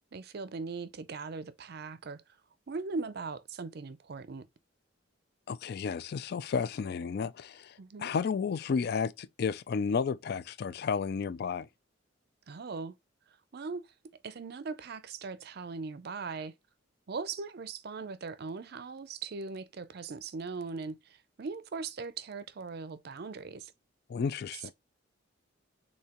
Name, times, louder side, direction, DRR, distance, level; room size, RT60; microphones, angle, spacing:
voice 1, 0.1-2.2 2.7-4.5 7.8-8.1 12.5-13.0 13.5-13.9 14.2-16.5 17.1-23.7, right 4 dB, 50° right, 0.5 m, -39 dB
voice 2, 5.5-11.7 24.1-24.7, left 6 dB, 50° left, 0.3 m, -32 dB
6.5 x 2.7 x 2.9 m
head